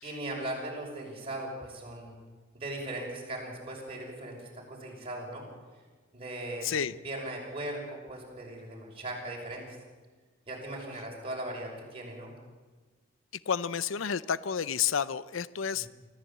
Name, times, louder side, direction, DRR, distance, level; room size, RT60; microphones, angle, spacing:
voice 1, 0.0-2.1 2.5-5.4 6.1-6.7 7.0-9.8 10.5-12.3 15.8-15.9, right 1 dB, 30° right, -1 dB, 6.0 m, -38 dB
voice 2, 6.6-6.9 13.5-15.9, left 7 dB, 80° left, 17 dB, 0.6 m, -30 dB
24.5 x 14.5 x 8.7 m, 1.4 s
head